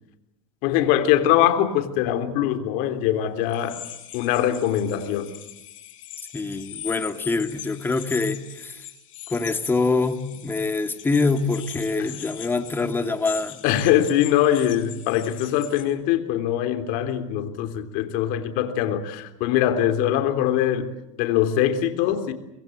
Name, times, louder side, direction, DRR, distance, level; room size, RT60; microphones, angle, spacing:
voice 1, 0.6-3.8 4.1-5.3 12.0-12.1 13.6-20.9 21.2-22.3, left 11 dB, 55° left, 9 dB, 3.4 m, -22 dB
sound 1, 3.5-15.8, left 12 dB, 80° left, 5.3 m, -41 dB
voice 2, 6.3-8.8 9.3-13.6, left 3 dB, 10° left, 7 dB, 2.5 m, -25 dB
24.5 x 22.5 x 8.0 m, 0.91 s
supercardioid pair, 120°, 16 cm